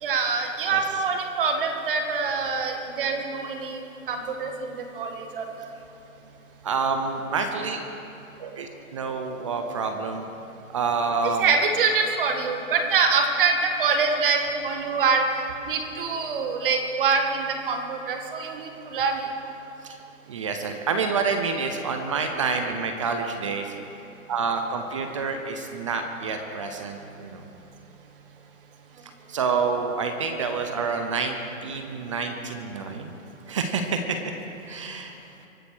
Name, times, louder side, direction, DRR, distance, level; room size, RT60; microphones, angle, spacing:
voice 1, 0.0-5.7 11.4-19.2, right 5 dB, 40° right, 4 dB, 1.9 m, -25 dB
voice 2, 6.6-7.8 8.4-10.2 10.7-11.5 19.8-20.0 20.3-23.7 24.3-27.4 29.3-33.1 33.5-34.2 34.7-35.1, right 5 dB, 25° right, 5 dB, 0.7 m, -28 dB
24.0 x 8.1 x 6.2 m, 2.8 s
hypercardioid pair, 155°, 42 cm